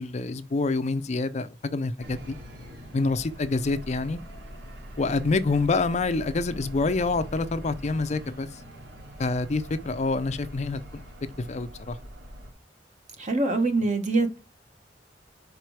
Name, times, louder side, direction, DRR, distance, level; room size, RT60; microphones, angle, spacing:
voice 1, 0.0-2.4 2.9-4.2 5.0-8.6 9.2-11.0 11.4-12.0, left 3 dB, 40° left, 0.5 m, -27 dB
sound 1, 2.0-12.5, equal, 75° right, 2.6 m, -42 dB
voice 2, 13.2-14.4, right 2 dB, 40° right, 1.2 m, -24 dB
5.0 x 4.5 x 4.7 m
head